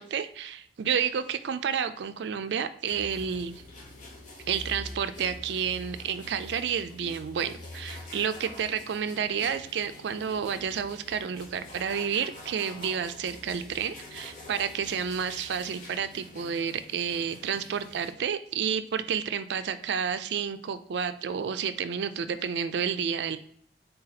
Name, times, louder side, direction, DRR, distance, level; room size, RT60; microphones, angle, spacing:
voice 1, 0.0-3.6 4.5-23.4, right 7 dB, 70° right, 11 dB, 0.4 m, -30 dB
sound 1, 2.9-18.1, left 1 dB, 45° left, 1.0 m, -46 dB
3.9 x 2.7 x 4.0 m, 0.63 s
head